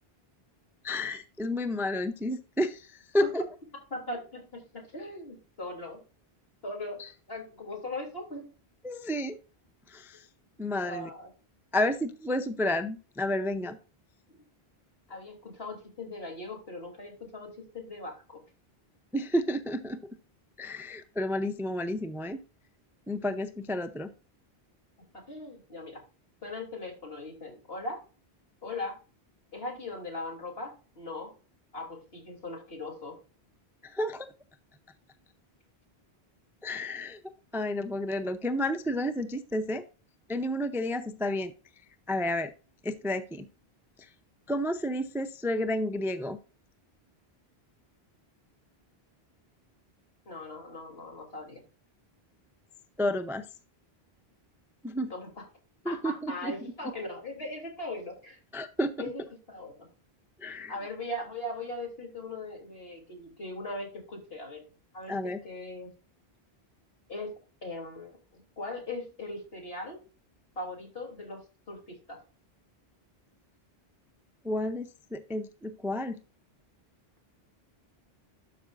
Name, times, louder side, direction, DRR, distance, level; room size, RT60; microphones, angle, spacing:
voice 1, 0.8-3.4 7.0-7.1 8.8-9.4 9.9-10.3 10.6-11.1 11.7-13.8 19.1-20.0 20.6-22.4 23.1-24.1 33.8-34.3 36.6-37.2 37.5-39.8 40.3-41.5 42.1-42.5 42.8-43.5 44.0-44.1 44.5-46.4 53.0-53.5 54.8-55.1 55.9-56.5 58.5-58.9 60.4-60.7 65.1-65.4 74.4-76.2, left 1 dB, 5° right, 10 dB, 0.4 m, -31 dB
voice 2, 3.9-6.0 6.6-7.0 7.3-8.5 10.8-11.3 14.3-14.4 15.1-18.4 25.3-26.0 26.4-28.0 28.6-29.0 29.5-31.3 31.7-33.2 50.3-51.6 55.1-55.4 55.9-58.4 59.0-59.9 60.7-64.6 64.9-65.9 67.1-67.3 67.6-70.0 70.6-72.2, left 2 dB, 70° left, 0 dB, 3.4 m, -39 dB
12.0 x 5.7 x 2.6 m, 0.35 s
omnidirectional pair, 1.1 m